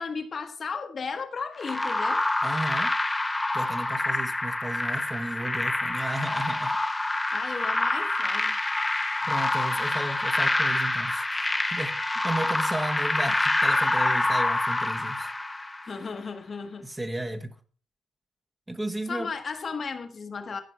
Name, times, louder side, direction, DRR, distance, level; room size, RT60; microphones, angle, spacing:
voice 1, 0.0-2.2 7.3-8.6 15.8-16.9 19.1-20.6, left 5 dB, 40° left, 1.2 m, -35 dB
sound 1, 1.6-16.0, left 2 dB, 15° left, 0.9 m, -26 dB
voice 2, 2.4-2.9 3.5-6.8 9.3-12.0 12.2-15.3 16.8-17.5 18.7-19.3, right 2 dB, 15° right, 1.3 m, -34 dB
14.5 x 5.0 x 5.7 m
cardioid pair, 90°, 0 cm